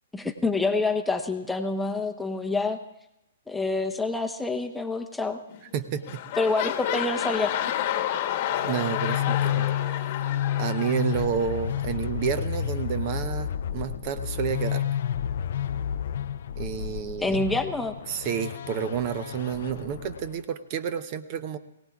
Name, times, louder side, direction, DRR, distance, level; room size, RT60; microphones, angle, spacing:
voice 1, 0.1-2.8 3.5-5.4 6.4-7.5 17.2-17.9, left 3 dB, 5° left, 5 dB, 0.8 m, -27 dB
sound 1, 5.5-5.8 6.0-11.9 12.5-12.6, left 11 dB, 45° left, 1.1 m, -30 dB
voice 2, 5.7-6.2 8.6-9.7 10.6-15.0 16.6-17.4 18.1-21.6, right 8 dB, 40° right, 12 dB, 0.8 m, -30 dB
sound 2, 8.6-20.4, left 10 dB, 60° left, 0.4 m, -31 dB
22.5 x 17.5 x 2.4 m, 0.86 s
hypercardioid pair, 135°, 0 cm